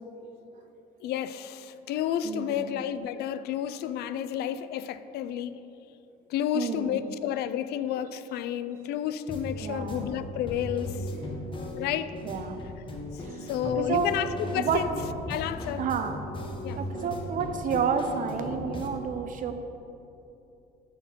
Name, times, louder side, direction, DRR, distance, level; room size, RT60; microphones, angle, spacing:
voice 1, 1.0-5.6 6.3-11.1 11.7-12.1 13.1-14.9 15.3-15.9 16.6-16.8, left 10 dB, 75° left, 13 dB, 0.4 m, -31 dB
voice 2, 2.2-2.7 6.5-7.1 9.6-10.1 11.3-11.4 12.2-12.6 13.2-14.1 14.6-14.8 15.8-16.2 16.7-19.5, right 6 dB, 50° right, 8 dB, 0.7 m, -30 dB
sound 1, 9.3-18.9, left 1 dB, 30° left, 1.2 m, -37 dB
12.5 x 4.5 x 4.5 m, 2.9 s
cardioid pair, 110°, 17 cm